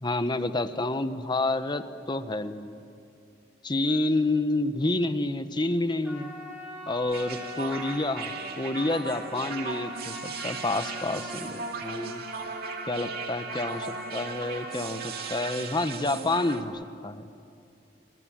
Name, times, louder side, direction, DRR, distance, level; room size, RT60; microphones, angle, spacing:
voice 1, 0.0-2.8 3.6-6.4 6.9-12.2 12.9-17.2, left 2 dB, 25° left, 10 dB, 1.2 m, -29 dB
Trumpet, 6.0-15.5, equal, 10° right, 7.7 m, -42 dB
sound 1, 7.1-16.6, right 5 dB, 60° right, 2.1 m, -37 dB
29.0 x 26.0 x 7.5 m, 2.6 s
head